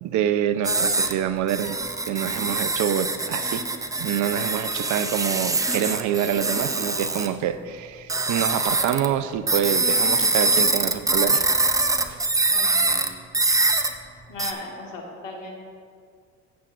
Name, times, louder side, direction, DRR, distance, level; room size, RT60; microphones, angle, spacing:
voice 1, 0.0-1.8 2.1-3.6 4.0-11.5 12.1-12.2, right 9 dB, 50° right, 12 dB, 0.6 m, -26 dB
sound 1, 0.6-1.1 1.5-7.3 8.1-9.1 9.5-13.1 13.3-13.9 14.4-14.5, right 2 dB, 10° right, 0.6 m, -23 dB
voice 2, 12.5-13.1 14.3-15.5, left 2 dB, 90° left, 0 dB, 1.6 m, -37 dB
15.5 x 7.3 x 2.6 m, 2.1 s
hypercardioid pair, 70°, 37 cm